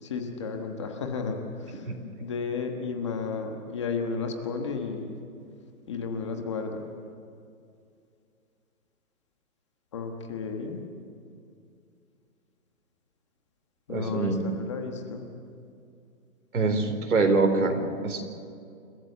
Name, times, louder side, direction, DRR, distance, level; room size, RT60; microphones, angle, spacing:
voice 1, 0.0-1.9 2.2-5.1 5.9-6.9 9.9-10.8 13.9-15.3, left 5 dB, 20° left, 4 dB, 1.2 m, -33 dB
voice 2, 13.9-14.4 16.5-18.2, right 3 dB, 85° right, 5 dB, 4.3 m, -24 dB
30.0 x 14.5 x 8.2 m, 2.4 s
hypercardioid pair, 175°, 43 cm